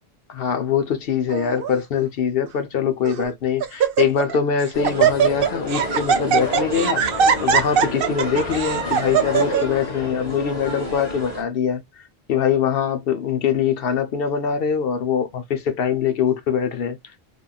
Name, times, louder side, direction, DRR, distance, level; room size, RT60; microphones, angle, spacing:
voice 1, 0.3-11.8 12.3-17.0, left 7 dB, 65° left, 0.9 m, -23 dB
Laughter, 1.3-1.7 2.5-2.6 3.1-3.3 3.6-4.4 4.6-9.6, right 8 dB, 65° right, 0.7 m, -20 dB
sound 1, 4.7-11.4, left 1 dB, 40° left, 1.6 m, -29 dB
3.4 x 2.3 x 2.3 m
omnidirectional pair, 1.1 m